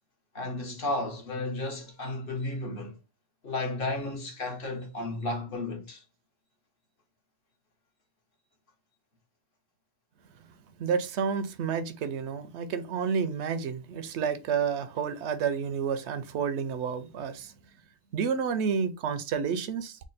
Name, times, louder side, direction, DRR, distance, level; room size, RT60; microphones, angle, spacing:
voice 1, 0.3-3.0 3.4-6.0, left 2 dB, 55° left, 1.2 m, -33 dB
voice 2, 10.8-17.5 18.1-20.0, right 6 dB, 85° right, 0.9 m, -30 dB
3.6 x 2.1 x 3.9 m
omnidirectional pair, 1.1 m